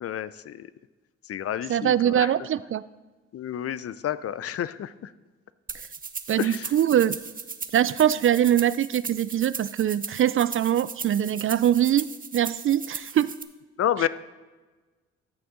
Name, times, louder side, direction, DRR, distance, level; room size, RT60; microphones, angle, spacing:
voice 1, 0.0-0.7 1.3-2.3 3.3-5.1 6.4-6.7 13.8-14.1, left 10 dB, 50° left, 16 dB, 0.5 m, -30 dB
voice 2, 1.7-2.8 6.3-7.2 7.7-12.0 12.3-13.3 14.0-14.1, right 10 dB, 45° right, 18 dB, 0.4 m, -23 dB
sound 1, 5.7-13.4, right 5 dB, 30° right, 0.8 m, -37 dB
14.0 x 6.7 x 3.8 m, 1.3 s
supercardioid pair, 50°, 30 cm